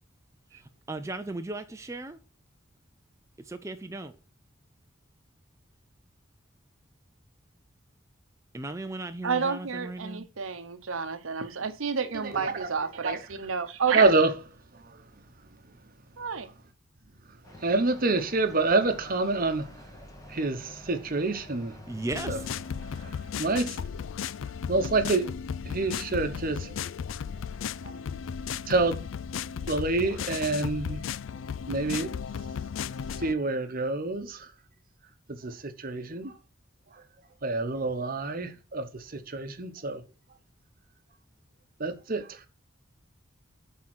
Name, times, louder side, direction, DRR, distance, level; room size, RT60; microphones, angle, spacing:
voice 1, 0.6-2.2 3.4-4.2 8.5-10.3 21.9-22.5, right 2 dB, 15° right, 0.4 m, -36 dB
voice 2, 9.2-14.1 16.2-16.5, right 6 dB, 80° right, 0.9 m, -30 dB
voice 3, 12.2-12.7 13.0-13.2 13.9-14.3 17.6-19.7 20.3-21.8 22.3-22.4 23.0-23.8 24.7-25.3 25.6-26.7 27.8-27.9 28.7-29.0 29.7-31.0 31.7-32.1 33.2-34.5 35.3-36.3 37.4-40.0 41.8-42.4, right 3 dB, 45° right, 0.9 m, -27 dB
sound 1, 17.4-23.1, left 1 dB, 15° left, 1.2 m, -49 dB
sound 2, 22.1-33.3, left 7 dB, 70° left, 0.4 m, -35 dB
8.5 x 3.7 x 6.0 m
head